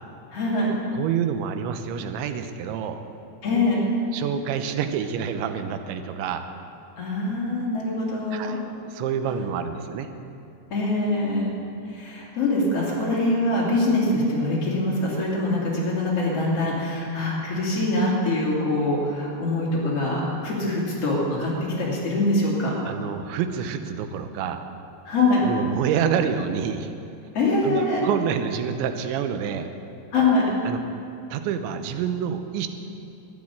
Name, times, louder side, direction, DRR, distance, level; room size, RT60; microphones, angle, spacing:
voice 1, 0.3-0.8 3.4-3.8 7.0-8.6 10.7-11.5 11.9-21.5 21.8-22.7 25.1-25.4 27.3-28.1 30.1-30.5, left 2 dB, 35° left, -5 dB, 3.5 m, -24 dB
voice 2, 0.9-3.0 4.1-6.5 8.3-8.6 8.9-10.1 22.9-24.7 25.4-26.9 27.6-29.7 30.7-31.0 31.3-32.7, right 8 dB, 85° right, 8 dB, 3.1 m, -27 dB
13.0 x 10.0 x 8.6 m, 2.6 s
omnidirectional pair, 5.2 m